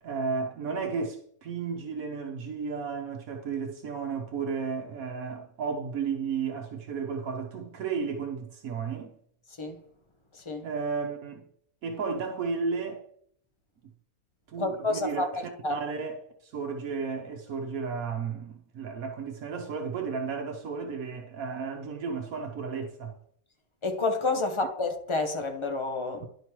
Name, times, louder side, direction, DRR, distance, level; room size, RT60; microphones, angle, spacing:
voice 1, 0.0-9.1 10.6-11.4 11.8-13.0 14.5-23.2, right 5 dB, 80° right, 1.3 m, -33 dB
voice 2, 10.3-10.7 14.6-15.3 15.6-15.8 23.8-26.3, left 3 dB, 25° left, 0.8 m, -29 dB
11.0 x 5.1 x 3.0 m
omnidirectional pair, 1.5 m